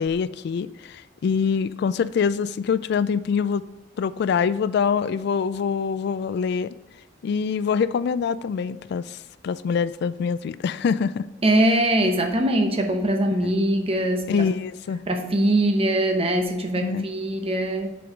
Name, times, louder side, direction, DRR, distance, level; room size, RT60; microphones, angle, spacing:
voice 1, 0.0-3.6 4.0-6.7 7.2-11.3 13.4-13.5 14.3-15.0 16.7-17.1, left 6 dB, 60° left, 16 dB, 0.3 m, -25 dB
voice 2, 11.4-14.5 15.1-17.9, right 1 dB, 30° right, 5 dB, 0.8 m, -22 dB
6.2 x 4.7 x 5.0 m, 1.0 s
head